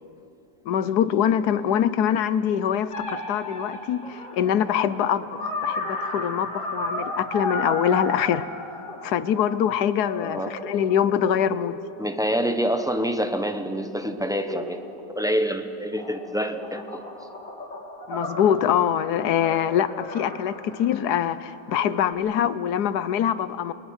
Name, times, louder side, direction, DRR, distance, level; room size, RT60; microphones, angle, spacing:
voice 1, 0.7-8.5 9.0-11.8 18.1-23.7, left 9 dB, 80° left, 14 dB, 1.3 m, -24 dB
sound 1, 2.9-9.7 10.1-13.3 14.2-15.5 15.9-21.1 21.7-22.1, left 1 dB, 50° left, 3.7 m, -35 dB
voice 2, 10.2-10.5 12.0-14.8 15.1-17.0, equal, 5° right, 7 dB, 0.7 m, -26 dB
29.5 x 21.5 x 6.4 m, 2.7 s
omnidirectional pair, 1.7 m